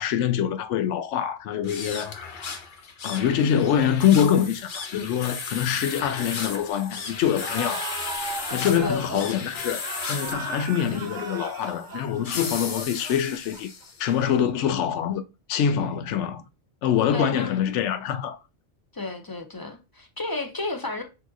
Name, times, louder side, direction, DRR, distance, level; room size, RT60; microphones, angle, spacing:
voice 1, 0.0-2.1 3.0-8.0 8.5-9.8 10.1-13.7 14.0-15.2 15.5-16.4 16.8-18.4, left 9 dB, 90° left, 0.9 m, -24 dB
sound 1, 1.6-14.1, left 5 dB, 50° left, 0.8 m, -36 dB
sound 2, 7.4-13.8, right 3 dB, 50° right, 0.8 m, -37 dB
voice 2, 8.8-9.4 17.1-17.6 18.9-21.0, left 2 dB, 30° left, 0.4 m, -32 dB
6.0 x 2.8 x 2.6 m
omnidirectional pair, 1.2 m